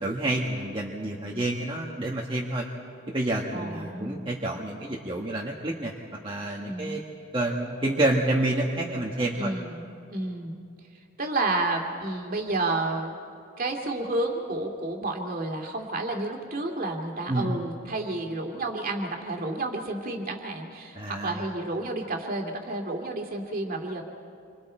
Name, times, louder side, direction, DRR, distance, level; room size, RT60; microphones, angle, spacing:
voice 1, 0.0-2.6 3.1-5.9 6.2-7.0 7.3-9.5 17.3-17.5 20.9-21.4, right 1 dB, 25° right, -2 dB, 1.4 m, -28 dB
voice 2, 3.5-4.3 6.6-7.0 9.4-9.8 10.1-10.6 11.2-13.1 13.6-24.0, right 2 dB, 40° right, 2 dB, 2.3 m, -30 dB
28.0 x 24.5 x 4.4 m, 2.4 s
head